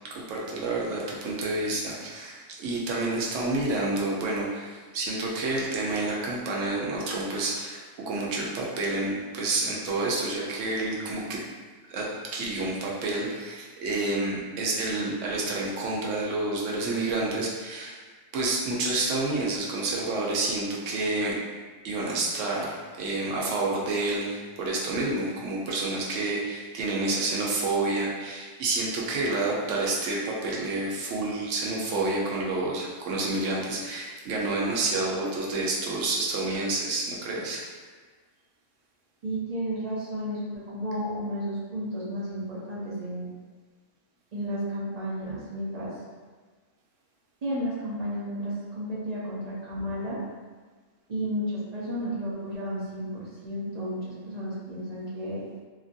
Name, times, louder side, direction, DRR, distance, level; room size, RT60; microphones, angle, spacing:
voice 1, 0.0-11.5 11.9-18.0 18.3-21.4 21.8-37.7, right 2 dB, 80° right, -3 dB, 1.0 m, -29 dB
voice 2, 39.2-43.3 44.3-45.9 47.4-50.2 51.1-55.4, equal, 45° right, -7 dB, 0.6 m, -32 dB
3.0 x 2.5 x 2.5 m, 1.4 s
omnidirectional pair, 1.3 m